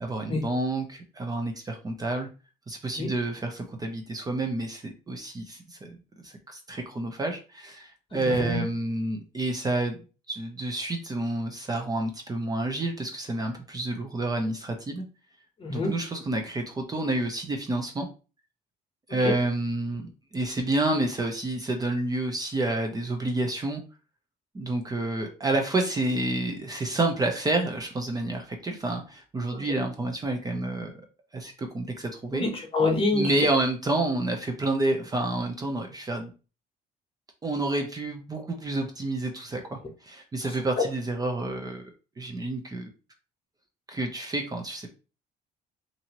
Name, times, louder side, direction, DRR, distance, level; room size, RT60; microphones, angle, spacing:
voice 1, 0.0-2.3 2.7-5.9 6.2-10.0 10.3-15.0 15.7-18.1 19.1-23.8 24.5-30.9 31.3-32.4 33.1-36.3 37.4-41.8 42.2-42.9 43.9-44.9, right 2 dB, 20° right, 3 dB, 0.5 m, -29 dB
voice 2, 8.3-8.6 15.6-15.9 19.2-19.3 29.6-29.7 32.3-33.4 40.4-40.6, left 2 dB, 35° left, 2 dB, 0.9 m, -26 dB
2.7 x 2.6 x 2.8 m, 0.34 s
cardioid pair, 110°, 17 cm